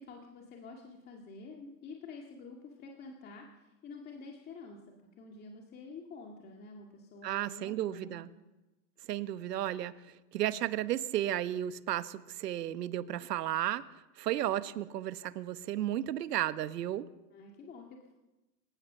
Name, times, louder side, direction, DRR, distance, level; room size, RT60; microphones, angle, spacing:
voice 1, 0.0-4.8 5.2-8.3 17.3-18.1, left 4 dB, 20° left, 1 dB, 2.0 m, -48 dB
voice 2, 7.2-8.3 9.1-13.9 14.2-17.1, right 12 dB, 75° right, 12 dB, 1.4 m, -33 dB
27.0 x 16.5 x 6.7 m, 1.0 s
supercardioid pair, 155°, 49 cm